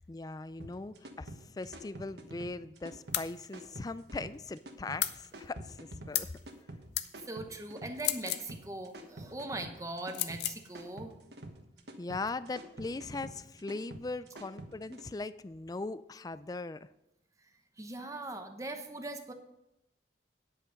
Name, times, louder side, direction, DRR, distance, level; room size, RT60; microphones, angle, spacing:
voice 1, 0.1-6.3 12.0-16.9, left 3 dB, 20° left, 15 dB, 0.3 m, -40 dB
sound 1, 0.6-15.0, right 1 dB, 70° right, 1.3 m, -48 dB
sound 2, 3.1-3.3 5.0-5.2 6.1-6.4 6.9-7.1 8.0-8.5 10.1-10.6, left 12 dB, 70° left, 0.7 m, -33 dB
voice 2, 7.3-11.1 17.8-19.3, right 2 dB, 20° right, 6 dB, 1.0 m, -40 dB
9.9 x 8.4 x 5.2 m, 0.87 s
head